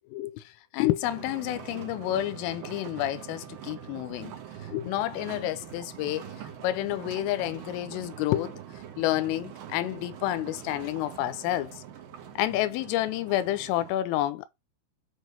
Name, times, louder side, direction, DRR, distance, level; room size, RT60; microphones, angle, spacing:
voice 1, 0.1-4.4 4.6-8.6 9.0-11.8 12.4-14.5, left 14 dB, 80° left, 3.2 m, -29 dB
sound 1, 1.0-13.9, right 9 dB, 85° right, 1.9 m, -43 dB
9.2 x 3.4 x 4.0 m
omnidirectional pair, 6.0 m